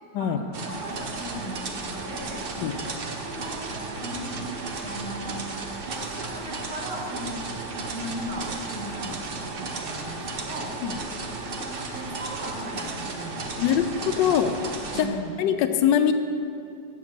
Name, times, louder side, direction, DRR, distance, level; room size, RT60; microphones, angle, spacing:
voice 1, 0.2-2.4 2.8-4.4 4.8-5.5 5.9-7.5 7.9-10.7 11.6-13.9 14.2-14.4 14.9-15.4, right 1 dB, 55° right, -3 dB, 1.8 m, -38 dB
sound 1, 0.5-15.1, right 3 dB, 75° right, 0.5 m, -34 dB
voice 2, 13.6-14.5 14.9-16.1, left 9 dB, 75° left, 8 dB, 1.2 m, -23 dB
7.6 x 7.2 x 7.3 m, 2.6 s
omnidirectional pair, 2.1 m